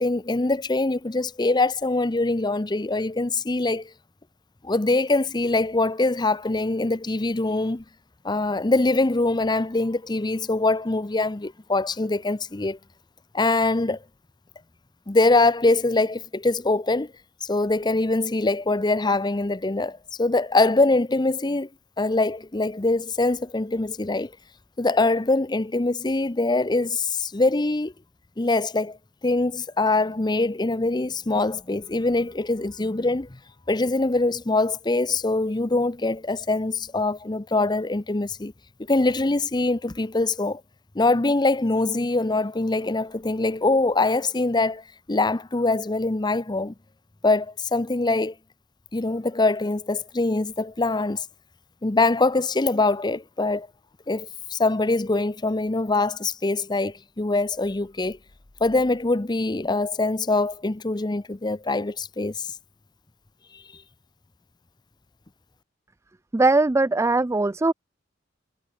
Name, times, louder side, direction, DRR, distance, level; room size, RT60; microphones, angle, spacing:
voice 1, 0.0-3.9 4.6-7.8 8.2-12.8 13.3-14.0 15.1-17.1 17.4-21.7 22.0-24.3 24.8-27.9 28.4-29.0 29.2-33.4 33.7-38.5 38.9-40.6 40.9-46.7 47.2-48.3 48.9-51.2 51.8-53.7 54.1-58.2 58.6-62.5 63.5-63.6, left 2 dB, 20° left, 0.7 m, -23 dB
voice 2, 66.3-67.7, right 2 dB, 15° right, 0.4 m, -20 dB
head